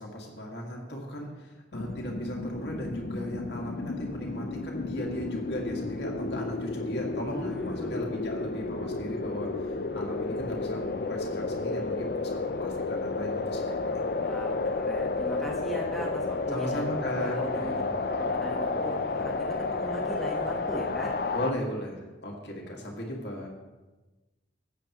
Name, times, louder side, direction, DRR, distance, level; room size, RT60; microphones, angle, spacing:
voice 1, 0.0-14.1 16.5-17.9 18.3-18.5 21.3-23.5, equal, 70° left, -1 dB, 2.0 m, -37 dB
sound 1, 1.7-21.5, left 3 dB, 55° left, 0.5 m, -32 dB
voice 2, 7.3-8.1 14.2-16.9 17.4-17.8 18.1-21.1, right 1 dB, ahead, -3 dB, 1.3 m, -39 dB
15.5 x 8.4 x 3.0 m, 1.2 s
head